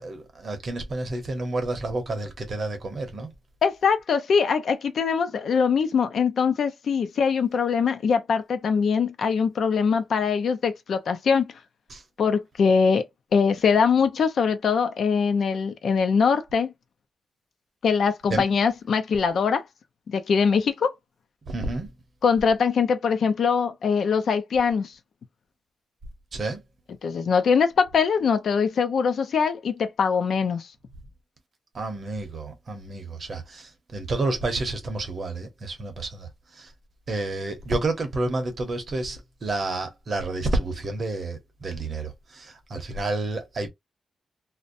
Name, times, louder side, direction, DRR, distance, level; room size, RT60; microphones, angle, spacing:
voice 1, 0.0-3.3 11.9-12.0 18.3-18.4 21.5-21.9 26.3-26.6 31.7-36.3 36.5-36.7 37.1-43.7, right 2 dB, 40° right, 0.8 m, -30 dB
voice 2, 3.6-11.5 12.2-13.0 13.3-16.7 17.8-19.6 20.1-20.9 22.2-24.9 27.0-30.7, left 6 dB, 65° left, 0.5 m, -22 dB
2.5 x 2.1 x 2.5 m
wide cardioid pair, 165°, 0 cm